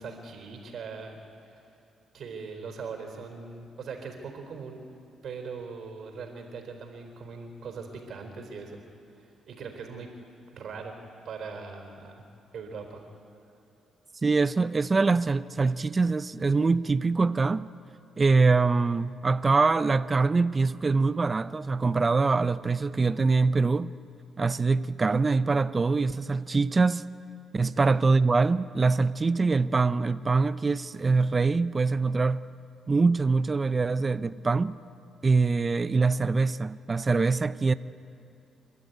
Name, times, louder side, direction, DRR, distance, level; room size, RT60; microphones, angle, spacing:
voice 1, 0.0-1.6 2.1-4.8 5.2-8.8 9.2-10.1 10.5-10.9 11.2-12.2 12.5-13.0 27.8-27.9, right 5 dB, 65° right, 3.9 m, -40 dB
voice 2, 14.2-17.7 18.2-23.9 24.4-27.0 27.5-32.4 32.9-34.8 35.2-37.7, right 4 dB, 30° right, 0.5 m, -24 dB
27.0 x 12.0 x 9.4 m
cardioid pair, 90°, 0 cm